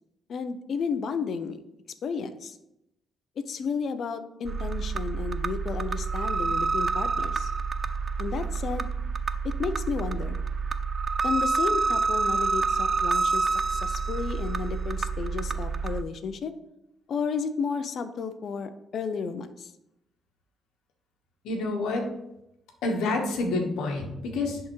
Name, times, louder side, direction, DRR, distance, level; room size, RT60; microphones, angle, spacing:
voice 1, 0.3-1.6 2.0-2.6 3.4-7.5 8.2-8.9 9.4-10.4 11.2-16.5 17.1-19.7, left 5 dB, 60° left, 11 dB, 0.6 m, -32 dB
sound 1, 4.4-16.0, right 4 dB, 40° right, 0.4 m, -28 dB
voice 2, 21.4-22.0 22.8-24.6, left 2 dB, 85° left, 3 dB, 1.1 m, -28 dB
10.5 x 3.6 x 3.1 m, 0.86 s
cardioid pair, 90°, 0 cm